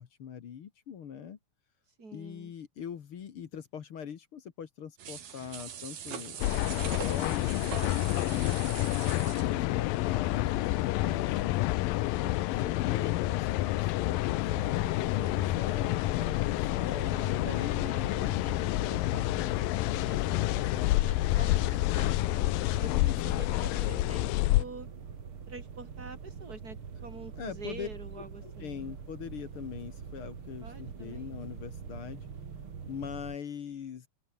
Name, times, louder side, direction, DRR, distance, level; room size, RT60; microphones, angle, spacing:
voice 1, 0.0-1.4 2.1-6.4 7.0-10.5 11.0-11.7 12.2-18.4 22.9-23.5 27.4-27.9 28.4-32.3 32.9-34.1, left 8 dB, 50° left, 1.8 m, -42 dB
voice 2, 2.0-2.5 9.3-9.8 17.0-22.5 22.8-24.9 25.5-28.8 30.6-31.3, right 3 dB, 25° right, 5.4 m, -47 dB
sound 1, 5.0-11.0 11.3-11.4, right 8 dB, 85° right, 4.7 m, -43 dB
sound 2, 6.4-24.6, left 17 dB, 80° left, 2.5 m, -28 dB
sound 3, 14.4-33.4, right 6 dB, 40° right, 2.9 m, -45 dB
open air
omnidirectional pair, 4.0 m